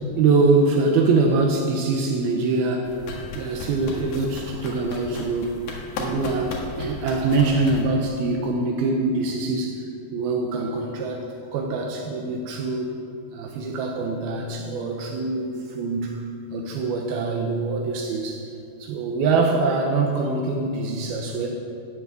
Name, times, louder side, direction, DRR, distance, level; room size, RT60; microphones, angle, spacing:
voice 1, 0.2-2.9 3.3-5.6 6.0-9.8 10.1-11.3 11.5-12.9 13.3-16.2 16.5-18.4 18.8-21.5, right 3 dB, 80° right, 2 dB, 2.9 m, -23 dB
sound 1, 2.8-7.8, left 3 dB, 85° left, 3.6 m, -35 dB
13.0 x 8.6 x 8.2 m, 2.4 s
omnidirectional pair, 4.3 m